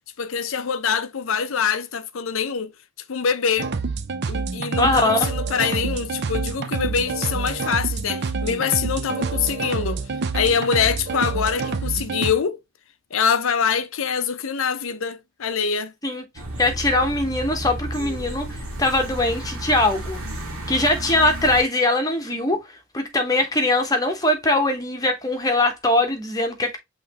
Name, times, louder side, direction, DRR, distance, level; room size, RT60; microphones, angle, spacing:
voice 1, 0.2-2.7 3.1-3.7 4.3-10.0 10.3-12.6 13.1-15.9, left 7 dB, 70° left, 0.6 m, -24 dB
sound 1, 3.6-12.3, right 4 dB, 50° right, 0.5 m, -27 dB
voice 2, 4.8-5.2 16.0-16.2 16.6-18.5 18.8-20.2 20.7-22.6 22.9-26.8, left 2 dB, 15° left, 1.0 m, -21 dB
sound 2, 16.3-21.6, right 1 dB, 75° right, 1.7 m, -32 dB
5.7 x 3.1 x 2.9 m
head